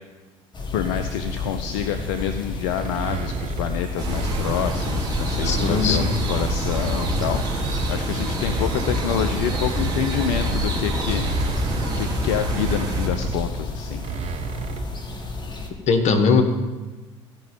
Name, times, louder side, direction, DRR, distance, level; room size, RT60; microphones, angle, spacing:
sound 1, 0.5-15.7, left 3 dB, 30° left, 1.6 m, -31 dB
voice 1, 0.7-11.3 11.6-14.0, left 9 dB, 65° left, 9 dB, 0.5 m, -28 dB
sound 2, 2.7-5.0 5.4-7.8 8.2-15.0, right 8 dB, 45° right, 0.6 m, -34 dB
sound 3, 4.0-13.1, right 1 dB, 25° right, 3.4 m, -26 dB
voice 2, 5.4-6.3 15.9-16.4, left 5 dB, 50° left, 5 dB, 1.3 m, -19 dB
15.0 x 5.3 x 5.1 m, 1.2 s
figure-of-eight pair, 60°, 16 cm